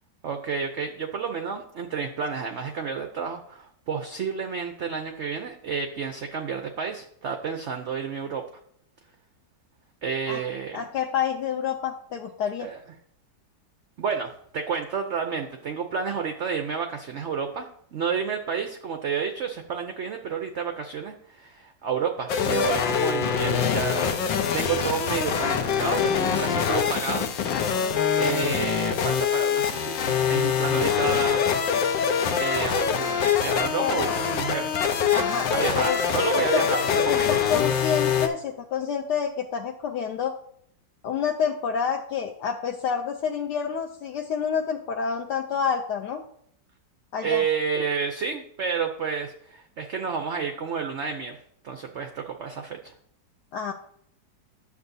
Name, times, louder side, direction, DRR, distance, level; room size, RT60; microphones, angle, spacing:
voice 1, 0.2-8.4 10.0-10.8 12.6-12.8 14.0-24.1 24.5-27.3 28.2-31.5 32.3-34.8 35.5-37.3 47.2-51.4 51.6-52.9, right 6 dB, 75° right, 5 dB, 0.6 m, -30 dB
voice 2, 10.7-12.7 33.8-34.2 35.1-36.0 36.3-36.6 37.1-40.3 41.0-46.2 47.1-47.4 53.5-53.7, left 7 dB, 75° left, 2 dB, 1.1 m, -28 dB
sound 1, 22.3-38.3, left 7 dB, 90° left, 1.4 m, -24 dB
9.6 x 6.8 x 2.7 m, 0.67 s
omnidirectional pair, 1.9 m